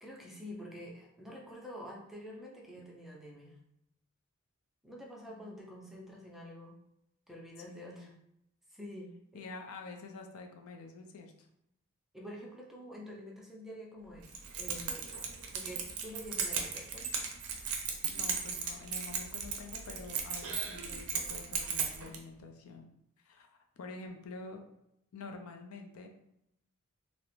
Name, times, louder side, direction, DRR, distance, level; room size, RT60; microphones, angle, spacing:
voice 1, 0.0-3.6 4.8-6.8 7.3-8.1 8.7-9.5 12.1-14.3 14.6-15.1 15.5-17.0, equal, ahead, -2 dB, 0.4 m, -47 dB
voice 2, 5.3-5.6 7.6-8.1 9.3-11.5 18.1-22.9 23.2-24.6 25.1-26.1, left 3 dB, 70° left, 4 dB, 0.4 m, -48 dB
Keys jangling, 14.2-22.2, right 6 dB, 75° right, 0.4 m, -36 dB
2.4 x 2.0 x 3.0 m, 0.80 s
head